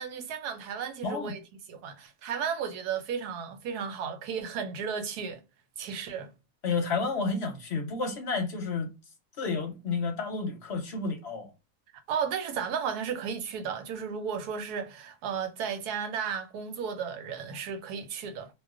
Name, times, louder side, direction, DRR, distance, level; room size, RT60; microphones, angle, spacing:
voice 1, 0.0-1.4 1.7-5.4 5.8-6.3 12.1-18.5, right 7 dB, 85° right, 1.2 m, -34 dB
voice 2, 1.0-1.4 6.6-8.9 9.4-11.5, left 4 dB, 55° left, 0.8 m, -31 dB
2.4 x 2.3 x 3.6 m
omnidirectional pair, 1.6 m